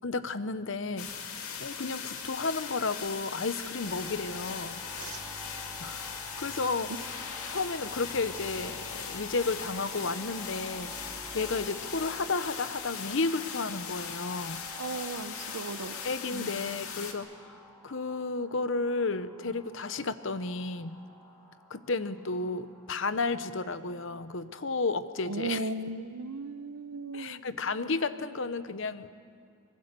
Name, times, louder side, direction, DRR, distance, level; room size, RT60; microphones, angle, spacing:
voice 1, 0.0-4.8 5.8-6.9 7.4-14.6 16.0-21.0 21.7-25.7 27.1-29.1, left 3 dB, 60° left, 12 dB, 0.9 m, -33 dB
sound 1, 1.0-17.1, left 6 dB, 80° left, 2.2 m, -39 dB
sound 2, 3.8-23.1, equal, 10° left, 2.7 m, -49 dB
voice 2, 14.8-16.0 16.3-16.5 25.3-27.4, right 2 dB, 85° right, 13 dB, 0.9 m, -36 dB
24.5 x 21.5 x 6.8 m, 2.4 s
head